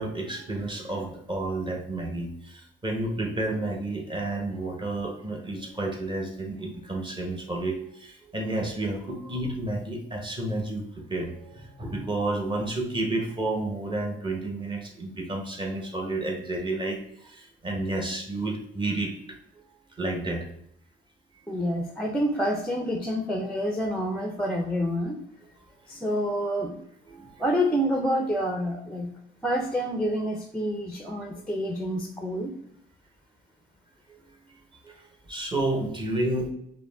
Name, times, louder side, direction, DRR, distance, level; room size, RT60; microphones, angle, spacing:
voice 1, 0.0-2.3 2.8-10.8 11.1-17.0 17.3-19.1 20.0-20.4 27.1-27.3 35.3-36.5, right 2 dB, 25° right, 1 dB, 1.1 m, -30 dB
voice 2, 21.5-25.2 25.9-26.8 27.4-29.1 29.4-32.6, equal, 5° left, 3 dB, 0.5 m, -28 dB
4.9 x 2.1 x 3.4 m, 0.73 s
cardioid pair, 90°, 20 cm